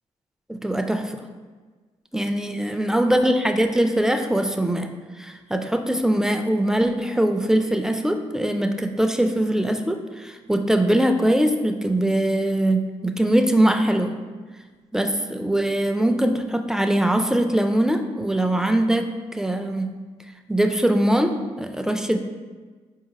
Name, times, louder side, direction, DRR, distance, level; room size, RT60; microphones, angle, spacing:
voice 1, 0.5-1.2 2.1-4.9 5.2-14.1 14.9-19.9 20.5-22.2, right 1 dB, 5° right, 6 dB, 0.3 m, -22 dB
4.4 x 2.8 x 2.9 m, 1.4 s
hypercardioid pair, 45°, 14 cm